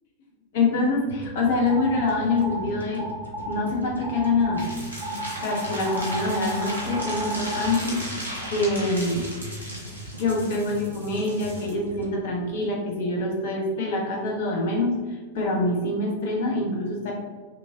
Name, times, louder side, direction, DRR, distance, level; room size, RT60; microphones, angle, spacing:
voice 1, 0.5-3.1 3.4-4.6 5.4-8.1 8.5-9.3 10.2-17.1, left 2 dB, 55° left, -1 dB, 1.2 m, -25 dB
sound 1, 1.1-13.3, equal, 80° right, 0.7 m, -40 dB
sound 2, 1.7-2.6 3.0-3.6 4.0-4.6 5.0-7.7, right 1 dB, 60° right, 1.5 m, -33 dB
sound 3, 4.6-11.7, equal, 90° left, 1.3 m, -36 dB
5.8 x 3.2 x 2.7 m, 1.4 s
figure-of-eight pair, 90°, 0 cm